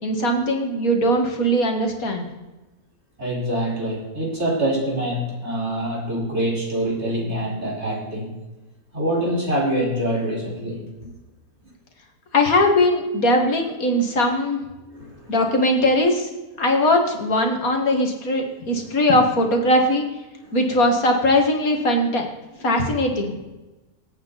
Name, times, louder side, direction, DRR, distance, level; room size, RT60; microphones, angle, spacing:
voice 1, 0.0-2.3 12.3-14.6 15.3-16.3 16.6-20.1 20.5-22.3 22.6-23.4, left 1 dB, 65° left, 3 dB, 2.3 m, -20 dB
voice 2, 3.2-8.3 8.9-11.1 14.8-15.4 20.4-20.6, right 1 dB, 45° right, -3 dB, 4.9 m, -25 dB
25.0 x 8.8 x 4.1 m, 1.1 s
omnidirectional pair, 1.6 m